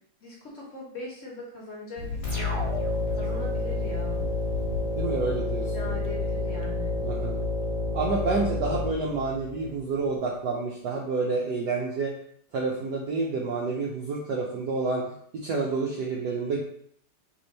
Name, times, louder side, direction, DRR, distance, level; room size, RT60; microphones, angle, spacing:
voice 1, 0.2-2.6 3.1-4.3 5.7-6.9, left 2 dB, 45° left, -4 dB, 1.1 m, -40 dB
Thunder, 2.0-10.2, left 5 dB, 80° left, 1.5 m, -40 dB
sound 1, 2.2-9.7, left 2 dB, 30° left, 0.6 m, -29 dB
voice 2, 5.0-5.8 7.0-7.4 7.9-12.1 12.5-15.0 15.3-16.6, right 3 dB, 70° right, -2 dB, 1.0 m, -29 dB
3.4 x 3.2 x 3.9 m, 0.66 s
omnidirectional pair, 2.3 m